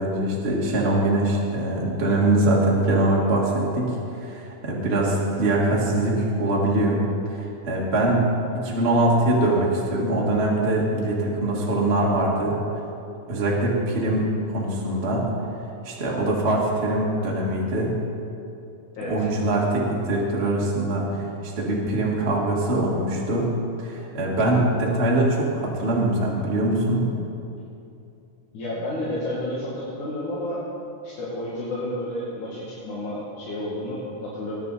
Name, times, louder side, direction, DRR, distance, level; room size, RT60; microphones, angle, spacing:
voice 1, 0.0-8.3 8.5-12.6 13.3-15.3 15.8-17.9 19.1-23.5 23.8-27.1, right 1 dB, 25° right, -4 dB, 1.6 m, -23 dB
voice 2, 28.5-30.6 31.0-34.5, left 1 dB, 75° left, -9 dB, 3.6 m, -31 dB
20.0 x 10.0 x 4.1 m, 2.7 s
omnidirectional pair, 3.6 m